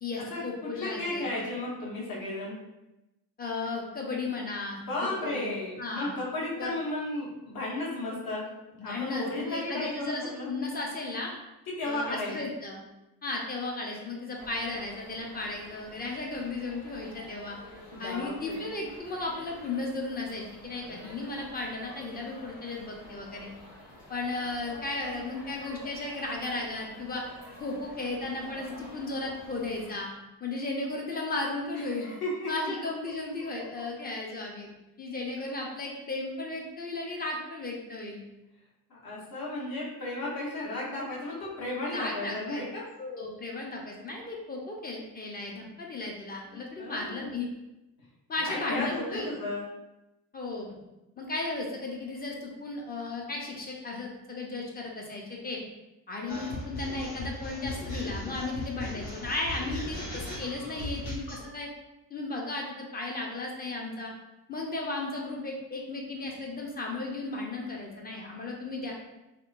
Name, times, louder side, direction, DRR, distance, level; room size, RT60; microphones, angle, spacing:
voice 1, 0.0-1.5 3.4-5.5 5.8-6.1 6.6-6.7 8.8-11.3 11.8-12.8 13.2-17.6 18.0-23.5 24.1-27.2 27.6-30.1 30.4-32.1 32.5-34.7 35.0-38.2 41.9-42.6 43.0-47.5 48.3-49.3 50.3-50.7 51.2-55.6 56.1-61.7 62.1-64.1 64.5-68.9, left 2 dB, 20° left, -1 dB, 0.5 m, -35 dB
voice 2, 0.8-2.6 4.8-8.5 8.8-10.5 11.8-12.3 17.9-18.7 31.8-32.5 38.9-42.8 46.5-47.3 48.4-49.6, left 2 dB, 45° left, -5 dB, 1.1 m, -34 dB
sound 1, 14.4-29.9, left 1 dB, 70° left, 1.2 m, -49 dB
sound 2, 56.3-61.4, left 1 dB, 85° left, 0.8 m, -38 dB
2.8 x 2.1 x 2.4 m, 0.96 s
figure-of-eight pair, 40°, 50 cm